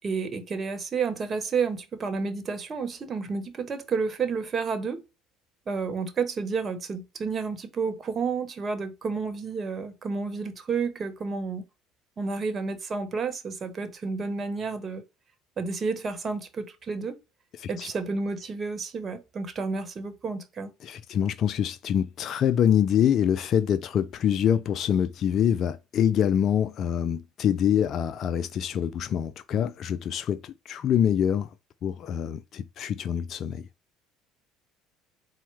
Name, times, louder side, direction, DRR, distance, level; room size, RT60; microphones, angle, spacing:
voice 1, 0.0-5.0 5.7-11.6 12.2-15.0 15.6-17.2 17.7-20.7, right 5 dB, 35° right, 1.0 m, -30 dB
voice 2, 17.6-17.9 20.8-31.5 31.8-33.7, left 9 dB, 55° left, 0.3 m, -25 dB
4.3 x 2.1 x 4.6 m
supercardioid pair, 75°, 0 cm